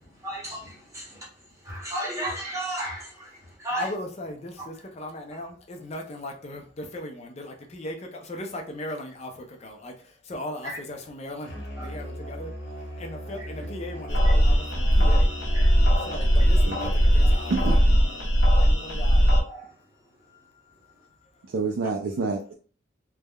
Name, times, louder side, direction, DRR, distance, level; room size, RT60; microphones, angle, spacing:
voice 1, 0.2-1.3 1.6-3.9 10.6-10.8 11.8-11.9 13.4-13.5 15.5-15.8 17.2-17.3 19.5-19.7, right 1 dB, 15° right, 0.8 m, -34 dB
voice 2, 3.5-19.8 20.2-21.5, left 1 dB, 35° left, 0.5 m, -39 dB
Musical instrument, 11.4-18.2, equal, 60° left, 0.9 m, -37 dB
sound 1, 14.1-19.4, equal, 80° left, 1.1 m, -19 dB
voice 3, 21.4-22.5, right 4 dB, 75° right, 0.4 m, -28 dB
3.3 x 2.1 x 2.2 m
head